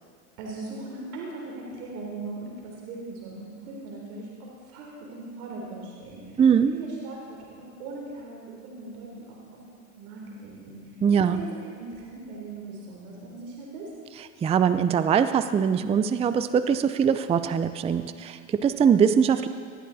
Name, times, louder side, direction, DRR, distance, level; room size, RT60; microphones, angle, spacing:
voice 1, 0.4-6.4 6.7-9.6 10.0-10.9 11.3-13.9, right 3 dB, 75° right, -2 dB, 3.8 m, -39 dB
voice 2, 6.4-6.7 11.0-11.4 14.4-19.5, right 7 dB, 15° right, 12 dB, 0.4 m, -22 dB
20.0 x 13.0 x 4.1 m, 2.1 s
supercardioid pair, 105°, 44 cm